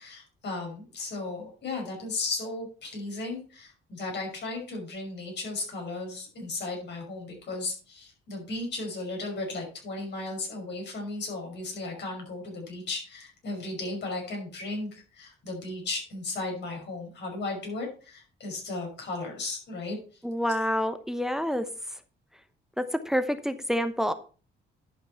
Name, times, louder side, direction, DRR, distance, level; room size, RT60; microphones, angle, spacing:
voice 1, 0.0-20.2, left 2 dB, 60° left, 1 dB, 5.5 m, -35 dB
voice 2, 20.2-21.7 22.8-24.1, equal, ahead, 10 dB, 0.9 m, -28 dB
11.0 x 6.0 x 4.5 m, 0.38 s
cardioid pair, 90°, 20 cm